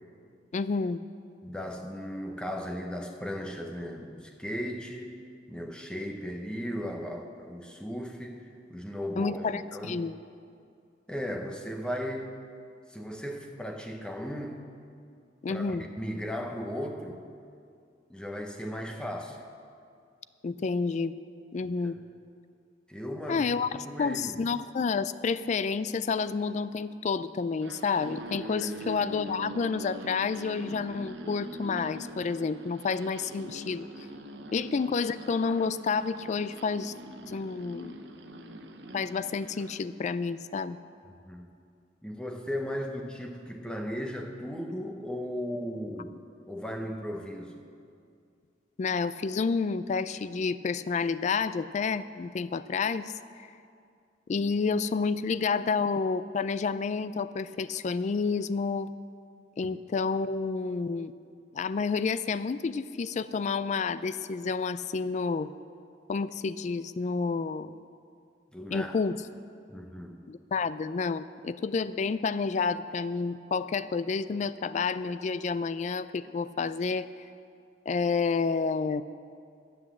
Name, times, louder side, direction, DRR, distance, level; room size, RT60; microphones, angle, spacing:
voice 1, 0.5-1.0 9.2-10.2 15.4-15.8 20.4-21.1 21.5-22.0 23.3-33.9 34.5-36.9 37.3-38.0 38.9-40.8 48.8-53.1 54.3-58.9 59.6-61.1 61.5-65.5 66.1-67.8 68.7-69.2 70.3-77.1 77.9-79.0, left 4 dB, 40° left, 15 dB, 0.3 m, -29 dB
voice 2, 1.4-5.1 5.5-10.1 11.1-12.3 12.9-14.6 15.5-17.2 18.1-19.4 21.8-21.9 22.9-23.6 23.8-24.4 28.6-28.9 41.1-41.5 42.0-46.2 46.5-47.6 68.5-69.0 69.7-70.3, equal, 5° left, 1 dB, 0.8 m, -36 dB
sound 1, 27.5-39.8, right 1 dB, 75° right, 0.9 m, -43 dB
12.0 x 7.9 x 7.3 m, 2.4 s
head